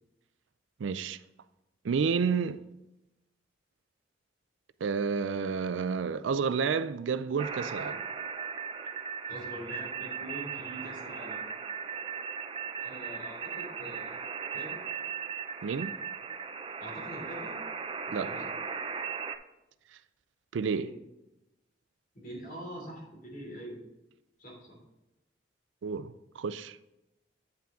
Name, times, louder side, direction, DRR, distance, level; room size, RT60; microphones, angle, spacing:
voice 1, 0.8-1.2 1.8-2.6 4.8-8.0 15.6-16.0 18.1-18.3 20.5-20.9 25.8-26.8, right 5 dB, 85° right, 0.4 m, -30 dB
sound 1, 7.4-19.4, right 6 dB, 30° right, 0.5 m, -37 dB
voice 2, 9.3-11.4 12.8-14.2 14.5-14.8 16.8-17.6 18.1-18.5 20.6-21.0 22.1-23.8 24.4-24.8, equal, 50° left, 3.0 m, -44 dB
8.9 x 5.8 x 3.7 m
head